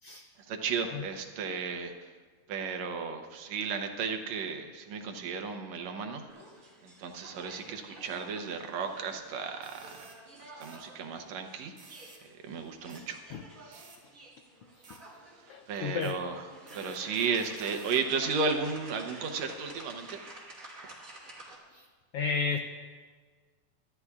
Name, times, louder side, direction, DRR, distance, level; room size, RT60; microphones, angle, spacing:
voice 1, 0.5-1.9 2.5-6.3 6.8-10.1 10.4-11.7 12.4-13.2 13.6-13.9 15.7-16.5 16.7-20.2, right 5 dB, 70° right, 4 dB, 2.0 m, -34 dB
sound 1, 6.3-21.6, right 2 dB, 30° right, 2.4 m, -51 dB
sound 2, 9.6-10.2 10.6-10.8 11.8-12.2 12.9-13.0 13.7-14.0 14.8-15.0 16.0-16.2 16.7-18.1, right 4 dB, 55° right, 2.8 m, -54 dB
voice 2, 15.5-16.2 21.7-21.8 22.1-22.6, left 5 dB, 80° left, 5 dB, 1.3 m, -32 dB
23.5 x 12.5 x 2.4 m, 1.5 s
omnidirectional pair, 3.4 m